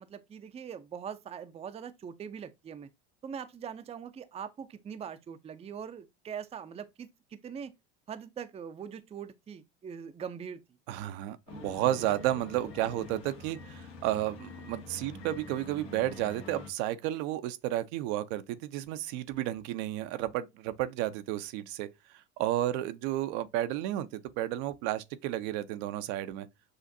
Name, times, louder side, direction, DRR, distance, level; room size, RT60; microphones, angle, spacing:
voice 1, 0.0-2.9 3.2-7.7 8.1-10.6, right 7 dB, 20° right, 0.4 m, -42 dB
voice 2, 10.9-21.9 22.1-26.5, right 13 dB, 65° right, 0.6 m, -32 dB
sound 1, 11.5-16.7, left 3 dB, 85° left, 1.5 m, -46 dB
6.4 x 2.5 x 2.6 m
hypercardioid pair, 85°, 35 cm